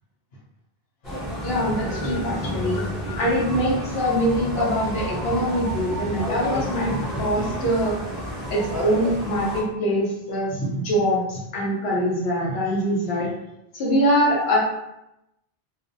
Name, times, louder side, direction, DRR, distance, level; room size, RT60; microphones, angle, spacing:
sound 1, 1.0-9.6, equal, ahead, 0.6 m, -30 dB
voice 1, 1.4-8.0 8.5-13.3 13.7-14.6, equal, 80° left, -3 dB, 1.0 m, -23 dB
2.5 x 2.0 x 2.5 m, 0.86 s
omnidirectional pair, 1.0 m